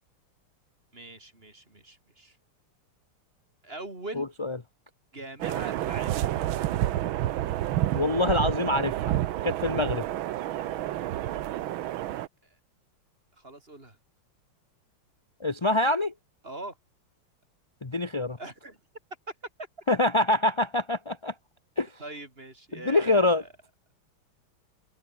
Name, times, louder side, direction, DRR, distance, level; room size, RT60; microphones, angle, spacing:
voice 1, 0.9-2.4 3.6-4.3 5.1-6.3 12.4-12.6 13.4-14.0 16.4-16.8 18.4-18.8 19.6-19.7 22.0-23.5, right 2 dB, 25° right, 4.3 m, -42 dB
voice 2, 4.2-4.6 7.9-10.0 15.4-16.1 17.8-18.4 19.9-21.3 21.8-21.9 22.7-23.4, left 2 dB, 25° left, 0.5 m, -25 dB
sound 1, 5.4-12.3, right 13 dB, 70° right, 1.6 m, -29 dB
open air
omnidirectional pair, 2.4 m